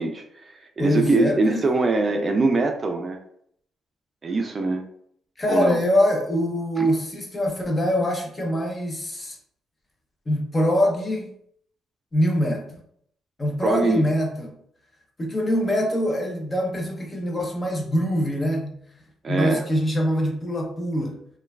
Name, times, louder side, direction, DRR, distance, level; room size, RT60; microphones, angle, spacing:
voice 1, 0.0-3.2 4.2-4.8 5.5-5.8 6.8-6.9 13.6-14.0 19.2-19.6, right 3 dB, 35° right, 5 dB, 0.3 m, -23 dB
voice 2, 0.8-1.7 5.4-9.4 10.3-11.3 12.1-12.8 13.4-14.6 15.2-18.8 19.3-21.2, equal, 25° left, 1 dB, 0.6 m, -24 dB
3.0 x 2.2 x 2.3 m, 0.66 s
cardioid pair, 90°, 0 cm